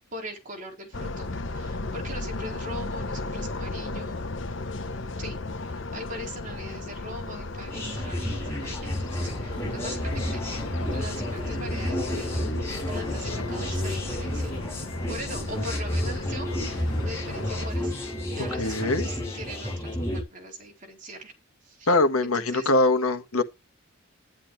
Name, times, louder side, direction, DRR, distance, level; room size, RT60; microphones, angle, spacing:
voice 1, 0.1-4.3 5.2-10.4 10.9-12.5 12.9-14.6 15.1-18.0 18.3-21.3 21.6-21.9 22.2-22.7, equal, 35° right, 4.2 m, -41 dB
sound 1, 0.9-17.7, left 2 dB, 60° left, 1.0 m, -35 dB
sound 2, 7.7-20.2, left 1 dB, 10° left, 6.5 m, -31 dB
sound 3, 8.6-19.8, left 2 dB, 25° left, 3.7 m, -45 dB
voice 2, 18.6-19.1 21.9-23.4, left 2 dB, 90° left, 1.6 m, -22 dB
12.0 x 11.5 x 3.2 m
head